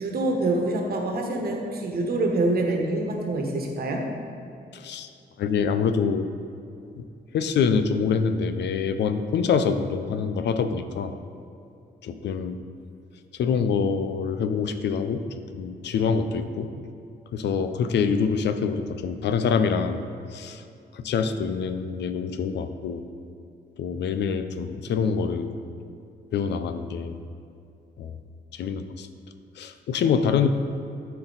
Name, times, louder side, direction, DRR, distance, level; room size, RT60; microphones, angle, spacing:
voice 1, 0.0-4.1, right 2 dB, 60° right, 1 dB, 1.3 m, -26 dB
voice 2, 4.7-5.1 5.4-6.3 7.0-7.1 7.3-11.1 12.0-12.6 13.3-15.2 15.5-16.7 17.3-20.0 20.3-20.6 20.9-23.0 23.8-25.6 26.3-27.2 28.0-28.1 28.5-29.1 29.6-30.5, left 6 dB, 75° left, 9 dB, 0.5 m, -25 dB
12.5 x 4.4 x 4.0 m, 2.6 s
cardioid pair, 105°, 18 cm